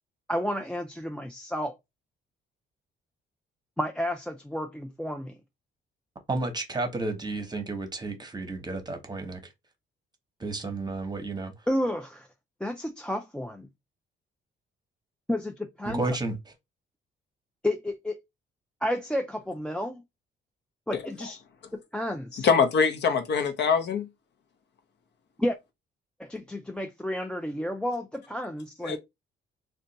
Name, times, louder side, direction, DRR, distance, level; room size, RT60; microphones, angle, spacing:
voice 1, 0.3-1.8 3.8-5.4 11.7-12.3 12.6-13.7 15.3-16.0 17.6-18.2 18.8-20.0 20.9-21.4 21.7-22.5 25.4-25.6 26.2-29.0, left 1 dB, 5° left, 0.3 m, -31 dB
voice 2, 6.3-9.5 10.4-11.5 15.8-16.4, right 2 dB, 20° right, 0.9 m, -32 dB
voice 3, 22.3-24.1 28.8-29.0, left 6 dB, 60° left, 0.7 m, -23 dB
2.5 x 2.2 x 4.0 m
cardioid pair, 90°, 20 cm